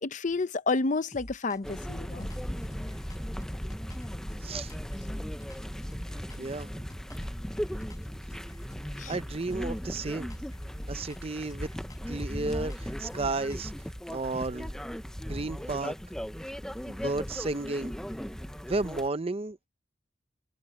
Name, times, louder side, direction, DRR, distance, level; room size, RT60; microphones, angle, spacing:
voice 1, 0.0-2.3 9.0-9.2, left 3 dB, 45° left, 0.7 m, -30 dB
sound 1, 1.1-1.8 2.2-7.5 7.8-9.2 9.5-13.9, equal, 20° left, 4.2 m, -47 dB
sound 2, 1.6-19.1, equal, 5° left, 0.6 m, -37 dB
voice 2, 6.4-6.9 9.1-10.3 10.9-11.7 12.1-13.7 14.1-14.7 15.3-15.9 16.8-17.9 18.7-19.7, right 3 dB, 35° right, 0.7 m, -33 dB
head